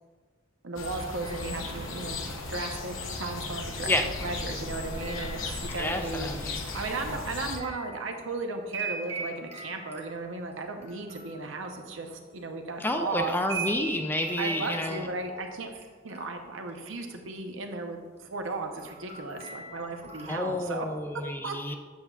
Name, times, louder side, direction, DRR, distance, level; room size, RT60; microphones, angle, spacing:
voice 1, 0.6-2.2 2.5-4.0 4.2-6.3 6.6-13.6 14.4-20.9 21.4-21.8, right 3 dB, 75° right, 4 dB, 0.8 m, -35 dB
sound 1, 0.8-7.6, left 3 dB, 85° left, 0.8 m, -36 dB
sound 2, 1.2-2.2 3.8-5.9 6.4-12.6 12.9-15.8 16.1-17.0 17.3-17.6 18.2-20.6, right 4 dB, 30° right, 1.1 m, -41 dB
voice 2, 5.8-6.6 12.8-15.1 20.3-21.8, left 1 dB, 10° left, 5 dB, 0.3 m, -30 dB
7.9 x 6.6 x 2.4 m, 1.5 s
head